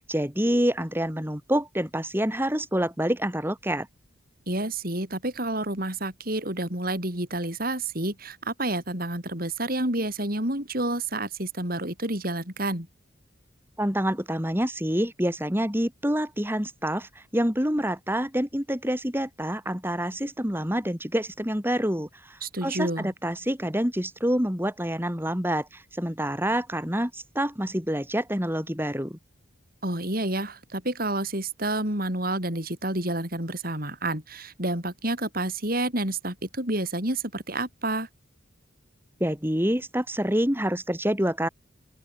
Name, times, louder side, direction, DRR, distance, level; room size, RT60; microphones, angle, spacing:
voice 1, 0.1-3.9 13.8-29.2 39.2-41.5, equal, 10° right, 6.0 m, -27 dB
voice 2, 4.5-12.9 22.4-23.1 29.8-38.1, right 1 dB, 45° right, 6.8 m, -29 dB
open air
head